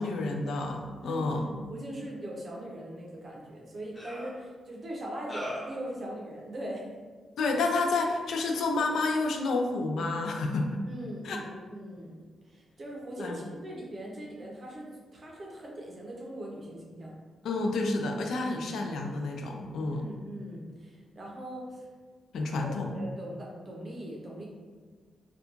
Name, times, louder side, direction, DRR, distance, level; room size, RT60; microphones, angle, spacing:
voice 1, 0.0-1.5 7.4-10.8 11.2-11.4 13.2-13.4 17.4-20.1 22.3-22.9, left 3 dB, 75° left, 2 dB, 0.3 m, -29 dB
voice 2, 1.0-6.9 10.8-12.2 12.4-17.1 19.9-21.9 22.6-24.5, right 1 dB, 35° right, -3 dB, 0.6 m, -41 dB
sound 1, 3.0-3.1 3.9-4.3 5.3-5.8, equal, 20° left, 0.6 m, -38 dB
2.4 x 2.2 x 2.9 m, 1.4 s
wide cardioid pair, 155°, 0 cm